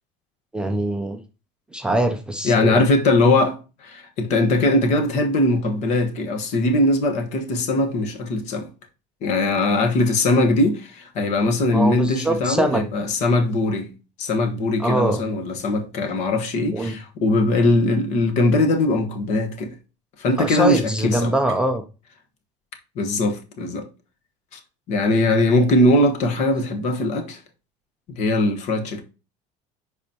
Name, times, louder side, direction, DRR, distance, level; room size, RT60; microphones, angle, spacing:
voice 1, 0.5-1.2 1.7-2.8 11.7-12.8 14.8-15.2 16.7-17.0 20.4-21.8, right 1 dB, 5° right, 0.4 m, -23 dB
voice 2, 2.4-8.7 9.2-13.9 14.2-19.7 20.2-21.3 22.9-23.9 24.5-24.6 24.9-27.4 28.1-29.0, left 2 dB, 50° left, 1.3 m, -20 dB
10.5 x 4.1 x 2.9 m
cardioid pair, 170°, 15 cm